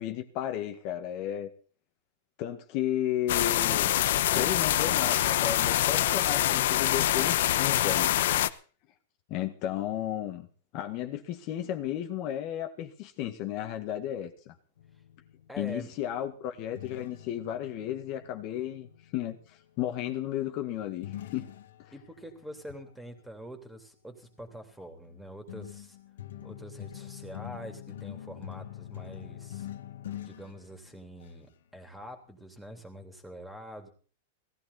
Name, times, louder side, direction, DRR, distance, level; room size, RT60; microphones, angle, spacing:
voice 1, 0.0-1.5 2.4-3.9 4.3-8.1 8.5-8.6 9.3-10.5 10.7-14.6 15.6-21.5 21.8-21.9, left 11 dB, 40° left, 5 dB, 1.8 m, -33 dB
sound 1, 3.3-8.5, left 13 dB, 65° left, 1.0 m, -25 dB
sound 2, 14.8-19.5 21.0-23.2 24.2-24.6 25.1-31.5, left 12 dB, 85° left, 1.9 m, -45 dB
voice 2, 15.5-15.9 21.9-26.0 26.4-29.7 30.2-33.9, equal, 5° right, 6 dB, 3.2 m, -45 dB
18.5 x 14.5 x 4.2 m, 0.40 s
supercardioid pair, 155°, 0 cm